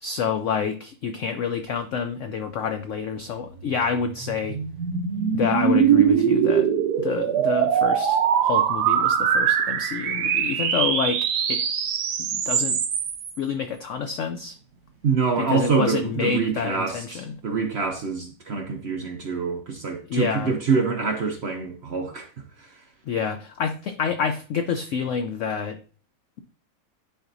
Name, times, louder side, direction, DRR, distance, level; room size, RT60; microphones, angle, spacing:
voice 1, 0.0-4.6 5.3-6.7 7.0-11.6 12.2-12.8 13.4-14.6 15.4-17.4 20.1-20.6 23.1-25.8, left 6 dB, 90° left, 0.6 m, -28 dB
sound 1, 3.6-13.3, right 8 dB, 70° right, 1.3 m, -22 dB
voice 2, 15.0-22.3 22.6-22.7, right 5 dB, 55° right, 0.7 m, -25 dB
10.5 x 4.4 x 2.6 m
omnidirectional pair, 1.9 m